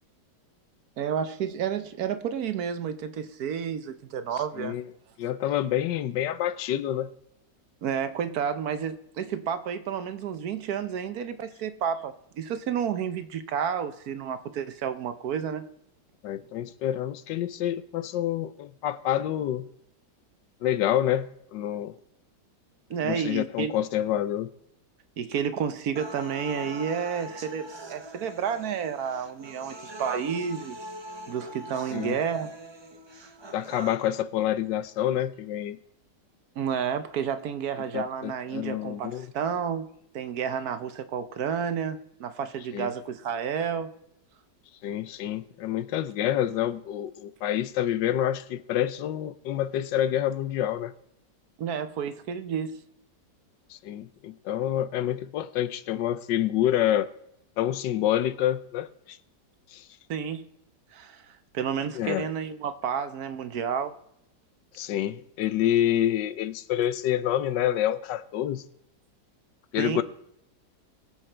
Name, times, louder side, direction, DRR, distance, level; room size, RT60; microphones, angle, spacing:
voice 1, 1.0-4.8 7.8-15.6 22.9-23.7 25.2-30.8 31.3-32.5 36.6-43.9 51.6-52.8 60.1-60.5 60.9-63.9 69.8-70.0, right 7 dB, 65° right, 1.2 m, -31 dB
voice 2, 5.2-7.1 16.2-19.7 20.6-22.0 23.0-24.5 31.9-32.2 33.5-35.8 37.9-39.3 42.7-42.9 44.8-50.9 53.7-57.1 57.6-59.2 59.7-59.9 61.9-62.3 64.7-68.6 69.7-70.0, left 12 dB, 90° left, 1.4 m, -27 dB
sound 1, 26.0-34.0, right 1 dB, 30° right, 0.5 m, -42 dB
21.0 x 7.3 x 4.4 m
omnidirectional pair, 1.9 m